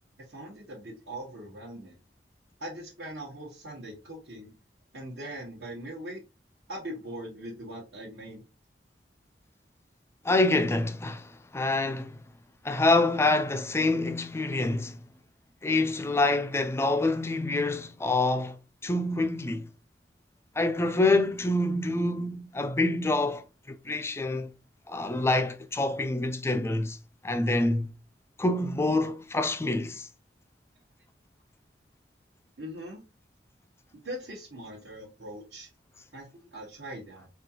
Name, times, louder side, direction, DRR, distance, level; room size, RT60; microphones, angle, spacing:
voice 1, 0.3-2.0 2.6-4.5 4.9-6.2 6.7-8.4 32.6-33.0 34.0-35.7 36.1-37.3, right 1 dB, 70° right, 1.1 m, -41 dB
voice 2, 10.2-12.2 12.6-15.0 15.6-18.6 18.8-19.7 20.6-24.5 24.9-27.0 27.2-27.9 28.4-30.1, left 2 dB, 15° left, 0.4 m, -26 dB
4.1 x 2.4 x 2.8 m
head